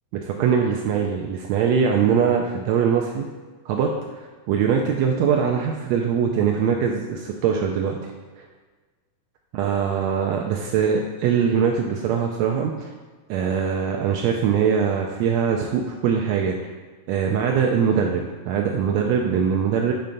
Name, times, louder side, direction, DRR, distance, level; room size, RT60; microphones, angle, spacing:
voice 1, 0.2-3.3 3.6-3.9 4.5-8.0 8.4-8.5 9.5-12.9 13.3-16.5 17.1-19.9, right 7 dB, 80° right, 1 dB, 1.6 m, -22 dB
6.9 x 3.2 x 5.2 m, 1.3 s
omnidirectional pair, 3.4 m